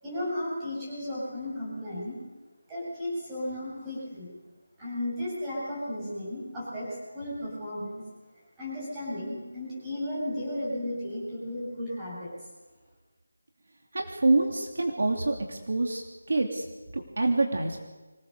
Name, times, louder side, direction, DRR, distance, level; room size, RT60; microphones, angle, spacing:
voice 1, 0.0-2.2 2.7-4.3 4.8-8.0 8.6-12.3, left 1 dB, 5° right, -8 dB, 7.6 m, -34 dB
voice 2, 13.9-16.6 16.9-17.8, right 2 dB, 50° right, 2 dB, 2.9 m, -26 dB
25.5 x 19.0 x 6.8 m, 1.2 s
figure-of-eight pair, 180°, 0 cm